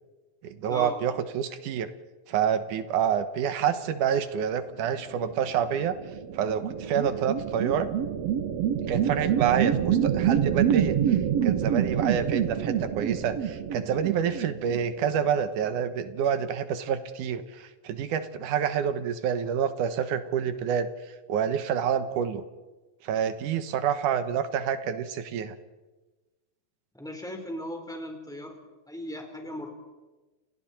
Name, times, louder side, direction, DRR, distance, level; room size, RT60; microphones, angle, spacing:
voice 1, 0.4-1.9 2.3-5.9 6.3-7.9 8.9-20.9 21.3-22.4 23.0-25.6, right 8 dB, 85° right, 10 dB, 2.7 m, -28 dB
sound 1, 5.5-15.3, right 9 dB, 60° right, 2.4 m, -27 dB
voice 2, 27.0-28.6 28.9-29.7, left 1 dB, ahead, 3 dB, 3.8 m, -37 dB
30.0 x 29.5 x 4.4 m, 1.2 s
omnidirectional pair, 3.6 m